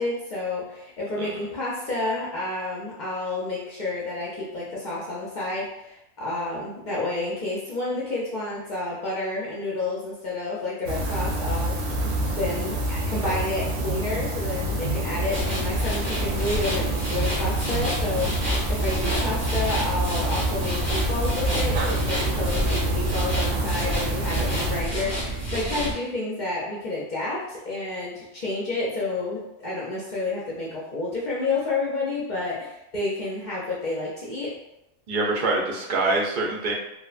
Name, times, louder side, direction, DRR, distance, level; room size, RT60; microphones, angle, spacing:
voice 1, 0.0-34.5, left 2 dB, 55° left, -6 dB, 0.5 m, -30 dB
Room night ambience quiet, 10.9-24.8, right 1 dB, 80° right, 0.9 m, -27 dB
sound 1, 15.3-25.9, right 1 dB, 15° right, 0.6 m, -29 dB
voice 2, 35.1-36.7, right 2 dB, 55° right, -2 dB, 0.6 m, -25 dB
2.7 x 2.1 x 2.4 m, 0.87 s
omnidirectional pair, 1.3 m